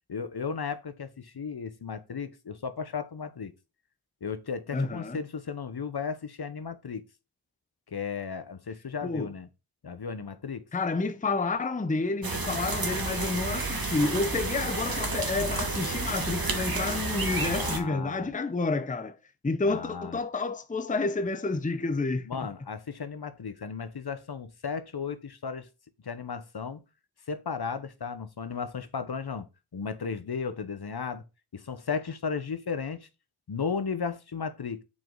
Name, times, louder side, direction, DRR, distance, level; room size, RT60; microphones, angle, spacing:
voice 1, 0.1-3.5 4.2-7.0 7.9-9.5 9.8-10.7 17.3-18.3 19.6-20.2 22.2-25.7 26.0-26.8 27.3-31.2 31.5-33.1 33.5-34.8, left 5 dB, 50° left, 1.1 m, -35 dB
voice 2, 4.7-5.2 9.0-9.3 10.7-19.2 19.4-22.3, left 3 dB, 15° left, 0.7 m, -29 dB
sound 1, 12.2-17.8, right 3 dB, 45° right, 1.8 m, -31 dB
7.5 x 4.7 x 3.9 m
cardioid pair, 45°, 50 cm